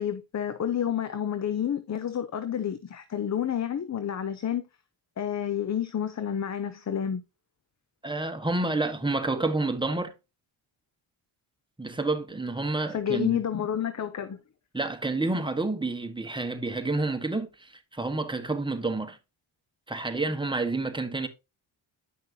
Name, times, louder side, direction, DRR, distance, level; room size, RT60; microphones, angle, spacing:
voice 1, 0.0-4.6 5.2-7.2 12.9-14.4, left 9 dB, 35° left, 0.7 m, -29 dB
voice 2, 8.0-10.1 11.8-13.3 14.7-19.2 19.9-21.3, right 2 dB, 10° right, 1.1 m, -29 dB
9.3 x 5.8 x 2.8 m
cardioid pair, 85°, 49 cm